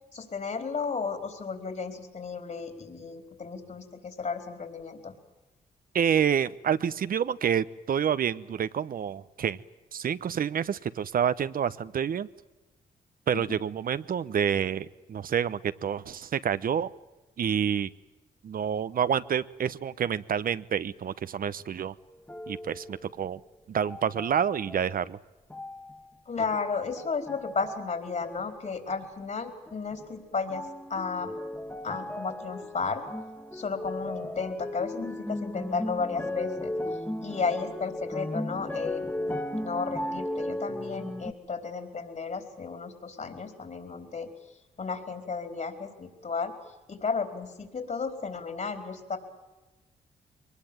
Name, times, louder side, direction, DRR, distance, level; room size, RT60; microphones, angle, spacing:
voice 1, 0.1-5.1 13.3-13.6 26.3-31.3 31.8-33.0 33.5-36.7 37.2-44.3 44.8-46.6 46.9-49.2, left 4 dB, 50° left, 6 dB, 4.3 m, -33 dB
voice 2, 5.9-9.6 9.9-12.3 13.3-16.9 17.4-17.9 18.4-21.9 22.5-23.4 23.7-25.2, right 8 dB, 60° right, 15 dB, 0.9 m, -28 dB
sound 1, 22.3-23.3 23.8-24.9 25.5-26.1 26.5-27.9 28.2-29.1 29.7-30.2 30.5-41.3, left 1 dB, 10° left, 1.7 m, -36 dB
23.0 x 20.0 x 8.8 m, 1.1 s
supercardioid pair, 55°, 16 cm